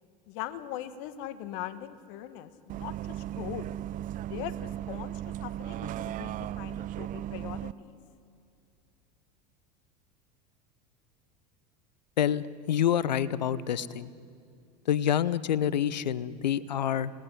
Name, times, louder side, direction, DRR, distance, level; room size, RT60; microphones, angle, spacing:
voice 1, 0.3-3.7 4.3-8.0, left 12 dB, 60° left, 11 dB, 1.5 m, -41 dB
Bus, 2.7-7.7, right 12 dB, 40° right, 0.6 m, -36 dB
voice 2, 12.2-14.1 14.9-17.1, left 9 dB, 85° left, 18 dB, 0.8 m, -27 dB
28.0 x 19.0 x 9.8 m, 2.5 s
hypercardioid pair, 85°, 21 cm